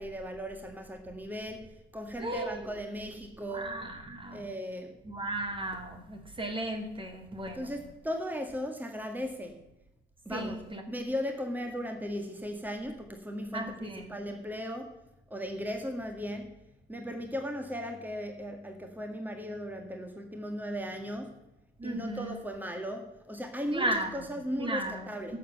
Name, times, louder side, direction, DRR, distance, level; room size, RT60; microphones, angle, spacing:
voice 1, 0.0-3.7 4.3-5.0 7.5-9.6 10.3-10.6 10.9-15.0 15.3-16.6 16.9-21.4 21.8-25.4, equal, 10° right, 4 dB, 1.9 m, -37 dB
voice 2, 2.2-2.6 3.5-4.5 5.0-7.7 10.3-10.8 13.5-14.1 21.8-22.4 23.7-25.4, right 1 dB, 25° right, 5 dB, 2.0 m, -35 dB
11.5 x 7.4 x 8.0 m, 0.89 s
cardioid pair, 90°, 20 cm